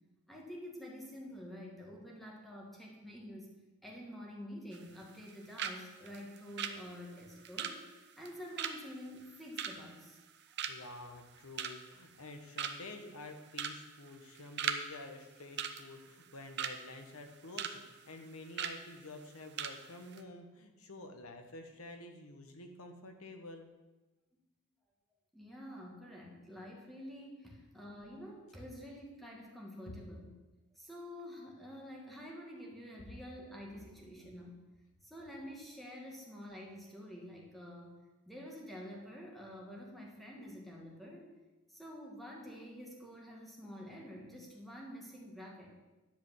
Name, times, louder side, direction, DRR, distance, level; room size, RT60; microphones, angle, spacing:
voice 1, 0.3-3.5 3.8-7.8 8.2-10.2 25.3-30.3 30.8-34.6 35.0-38.0 38.3-41.2 41.7-45.7, equal, ahead, -2 dB, 1.9 m, -48 dB
sound 1, 4.7-5.3 5.6-5.8 6.1-10.3 10.6-11.0 11.3-11.9 12.3-12.4 12.6-13.0 13.5-13.8 14.1-14.8 15.1-15.2 15.6-16.8 17.2-17.8 18.0-18.2 18.6-18.8 19.2-19.3 19.6-19.8 20.0-20.2, right 8 dB, 50° right, 0.7 m, -38 dB
voice 2, 10.7-23.7 29.9-30.0, left 2 dB, 70° left, 5 dB, 1.3 m, -49 dB
10.5 x 5.1 x 7.7 m, 1.1 s
head